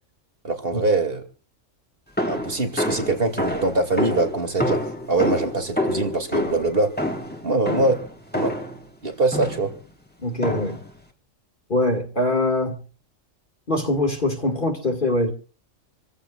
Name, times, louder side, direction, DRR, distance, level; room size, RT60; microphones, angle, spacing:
voice 1, 0.4-1.2 2.3-4.8 5.1-6.9 7.4-8.0 8.3-8.5 9.0-9.7, right 2 dB, 45° right, 2.7 m, -23 dB
sound 1, 2.2-8.8 9.3-9.8 10.4-10.9, left 1 dB, 5° left, 2.6 m, -27 dB
voice 2, 10.2-10.8 11.7-12.8 13.7-15.3, left 1 dB, 40° left, 2.3 m, -23 dB
27.5 x 15.0 x 2.5 m
omnidirectional pair, 1.3 m